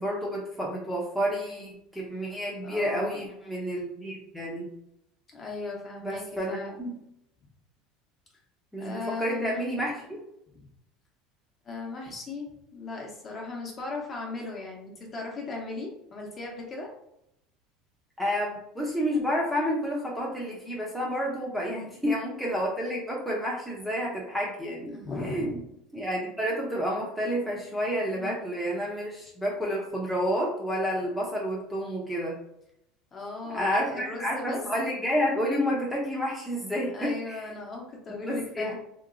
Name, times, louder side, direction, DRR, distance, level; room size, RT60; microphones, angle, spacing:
voice 1, 0.0-4.7 6.0-7.0 8.7-10.2 18.2-25.0 25.2-25.5 25.9-32.4 33.5-37.4 38.1-38.8, equal, ahead, -4 dB, 0.7 m, -30 dB
voice 2, 2.6-3.2 5.3-6.8 8.8-9.9 11.6-16.9 21.5-21.9 24.9-25.6 26.7-26.8 28.1-28.5 33.1-34.6 36.9-38.8, left 3 dB, 30° left, -1 dB, 0.9 m, -37 dB
2.9 x 2.8 x 2.5 m, 0.79 s
supercardioid pair, 130°, 0 cm